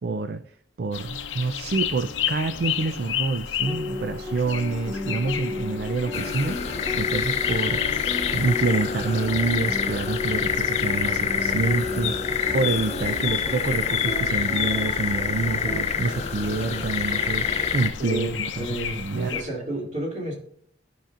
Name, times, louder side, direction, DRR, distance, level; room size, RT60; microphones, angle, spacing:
voice 1, 0.0-6.6 6.9-19.4, right 3 dB, 55° right, 10 dB, 0.4 m, -27 dB
sound 1, 0.9-19.4, left 8 dB, 85° left, 0.7 m, -33 dB
sound 2, 3.6-15.8, left 2 dB, 5° right, 0.6 m, -34 dB
sound 3, 6.1-17.9, left 6 dB, 35° left, 0.5 m, -27 dB
voice 2, 18.0-20.3, right 1 dB, 40° right, -2 dB, 2.6 m, -31 dB
12.5 x 5.8 x 2.5 m, 0.63 s
head